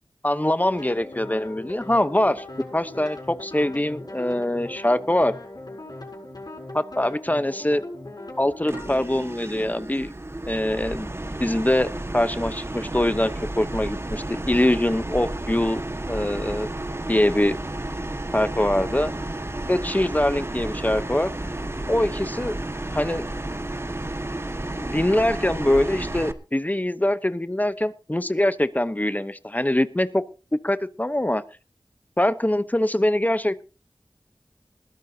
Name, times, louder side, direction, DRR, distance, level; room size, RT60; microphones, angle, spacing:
voice 1, 0.2-2.4 2.7-5.3 6.7-7.8 8.4-10.1 10.5-11.1 11.4-16.7 17.1-17.6 18.3-19.1 19.7-21.3 21.9-22.5 22.9-23.2 24.8-30.2 30.6-31.4 32.2-33.6, left 1 dB, 20° left, 13 dB, 0.9 m, -23 dB
sound 1, 0.6-9.0, left 2 dB, 60° left, 7.8 m, -39 dB
sound 2, 8.7-26.3, right 1 dB, 35° right, 1.6 m, -32 dB
20.5 x 13.5 x 2.8 m, 0.34 s
wide cardioid pair, 45°, 8 cm